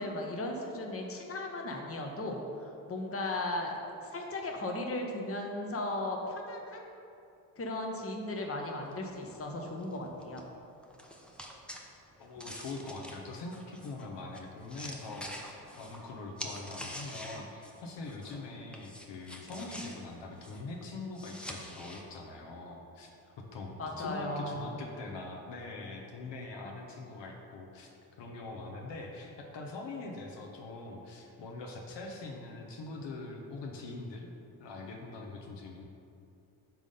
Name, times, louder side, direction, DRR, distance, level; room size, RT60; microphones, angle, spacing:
voice 1, 0.0-3.7 4.0-6.8 7.6-10.4 23.8-24.7, left 2 dB, 30° left, 1 dB, 1.0 m, -36 dB
sound 1, 8.8-18.5 18.7-22.0, equal, ahead, 0.8 m, -47 dB
voice 2, 12.2-23.1 23.4-27.9 28.2-34.3 34.6-35.8, left 3 dB, 60° left, 0 dB, 1.0 m, -43 dB
6.0 x 3.6 x 5.4 m, 2.7 s
hypercardioid pair, 55°, 48 cm